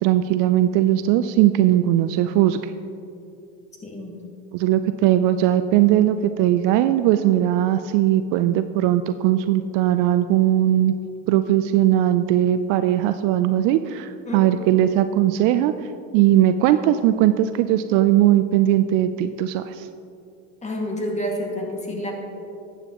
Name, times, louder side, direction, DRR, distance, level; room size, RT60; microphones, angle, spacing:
voice 1, 0.0-2.6 4.5-10.9 11.3-15.7 16.1-19.9, right 12 dB, 55° right, 11 dB, 0.5 m, -19 dB
voice 2, 3.8-4.2 14.3-14.7 20.6-22.1, equal, 15° left, 0 dB, 2.1 m, -29 dB
13.0 x 9.0 x 3.0 m, 2.6 s
hypercardioid pair, 95°, 40 cm